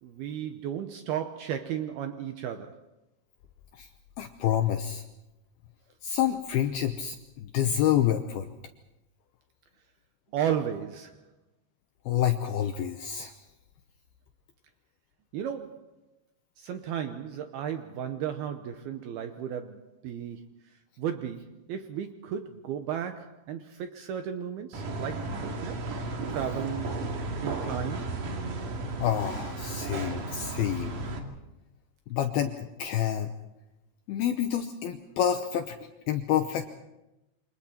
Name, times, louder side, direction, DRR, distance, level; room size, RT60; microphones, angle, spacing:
voice 1, 0.0-2.8 10.3-11.2 15.3-15.8 16.6-20.5 21.0-25.8 26.3-27.0 27.4-28.1, right 9 dB, 80° right, 2.4 m, -34 dB
voice 2, 4.2-5.0 6.0-8.5 12.1-13.3 29.0-31.0 32.1-33.3 34.1-35.8 36.1-36.7, left 10 dB, 80° left, 2.3 m, -28 dB
sound 1, 24.7-31.2, right 2 dB, 50° right, 3.2 m, -34 dB
28.0 x 26.0 x 4.4 m
omnidirectional pair, 5.5 m